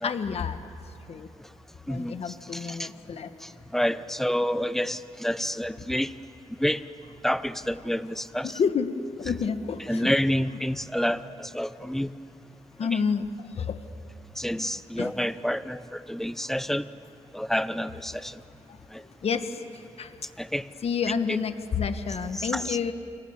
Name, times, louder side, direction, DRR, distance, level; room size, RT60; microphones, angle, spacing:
voice 1, 0.0-0.7 1.1-1.3 1.9-3.3 8.4-10.1 12.8-13.8 15.0-15.1 18.7-18.8 19.2-20.1 20.8-22.9, left 6 dB, 60° left, 9 dB, 1.5 m, -29 dB
voice 2, 1.9-2.9 3.4-6.1 6.6-6.8 7.2-8.6 9.9-12.1 12.9-13.0 14.4-16.8 17.3-18.4 18.9-19.0 20.4-20.6 22.3-22.8, equal, 5° left, 14 dB, 0.9 m, -28 dB
29.5 x 25.5 x 7.3 m, 2.6 s
cardioid pair, 95°, 12 cm